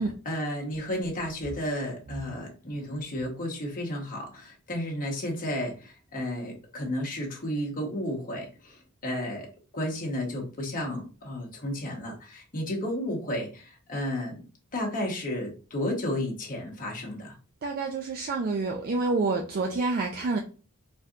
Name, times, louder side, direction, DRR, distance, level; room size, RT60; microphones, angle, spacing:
voice 1, 0.0-9.5 9.7-14.4 14.7-17.4, left 1 dB, 40° left, 0 dB, 1.0 m, -32 dB
voice 2, 17.6-20.4, right 3 dB, 40° right, 2 dB, 0.4 m, -28 dB
4.2 x 2.6 x 2.4 m, 0.36 s
head